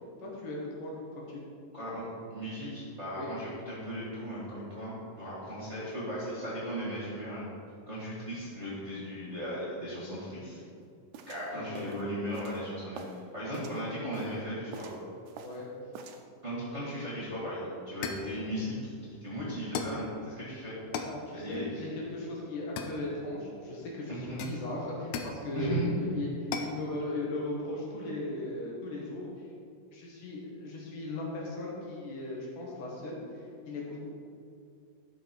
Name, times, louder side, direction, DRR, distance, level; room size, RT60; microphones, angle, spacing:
voice 1, 0.2-1.4 3.1-3.3 5.4-5.5 11.5-12.0 15.4-15.7 20.9-26.3 26.6-29.3 29.9-34.0, left 2 dB, 70° left, -3 dB, 3.1 m, -37 dB
voice 2, 1.7-7.5 7.9-10.6 11.3-13.0 13.3-14.9 16.4-18.9 19.2-20.8 21.3-21.9 24.1-24.4 25.5-25.9, equal, 25° right, -8 dB, 1.8 m, -37 dB
sound 1, 11.1-13.2 13.5-14.4 14.7-15.7 15.9-16.2, right 5 dB, 75° right, 1.8 m, -46 dB
sound 2, 17.3-17.5 18.0-18.4 19.7-20.1 20.9-21.2 22.8-23.4 24.4-25.4 26.5-26.8, left 5 dB, 85° left, 1.5 m, -37 dB
12.0 x 5.4 x 4.6 m, 2.5 s
omnidirectional pair, 4.0 m